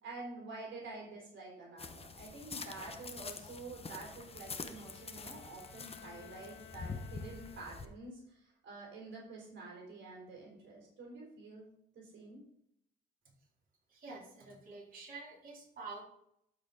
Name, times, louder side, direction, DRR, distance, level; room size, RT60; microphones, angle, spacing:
voice 1, 0.0-12.4, right 3 dB, 70° right, -2 dB, 3.5 m, -48 dB
sound 1, 1.8-7.8, left 4 dB, 30° left, 1.0 m, -46 dB
Bowed string instrument, 3.9-8.1, left 6 dB, 80° left, 1.3 m, -57 dB
voice 2, 13.9-16.0, right 3 dB, 45° right, -4 dB, 3.7 m, -48 dB
12.0 x 5.0 x 4.0 m, 0.73 s
cardioid pair, 90°, 20 cm